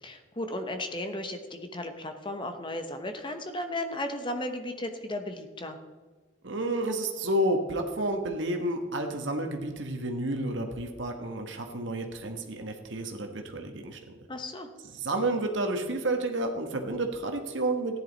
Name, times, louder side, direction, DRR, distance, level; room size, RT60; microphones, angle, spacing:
voice 1, 0.0-5.8 14.3-14.7, left 1 dB, 25° left, 7 dB, 1.0 m, -35 dB
voice 2, 6.4-14.0 14.9-18.0, right 1 dB, 65° right, 4 dB, 1.4 m, -30 dB
14.5 x 10.5 x 4.1 m, 1.4 s
head